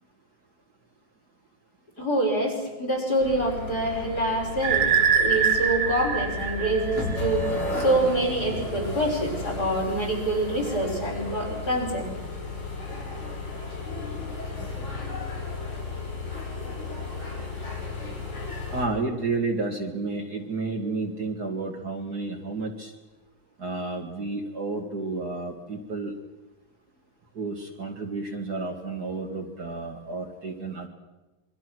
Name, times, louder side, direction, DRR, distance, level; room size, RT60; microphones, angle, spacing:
voice 1, 2.0-12.1, right 1 dB, 50° left, 0 dB, 5.8 m, -26 dB
sound 1, 3.2-18.8, left 2 dB, 80° left, 6.0 m, -34 dB
sound 2, 4.6-7.5, right 7 dB, 70° right, 4.6 m, -24 dB
voice 2, 18.7-22.9 23.6-26.1 27.3-30.9, right 3 dB, 50° right, 1 dB, 2.5 m, -31 dB
27.0 x 23.5 x 6.2 m, 1.1 s
omnidirectional pair, 2.3 m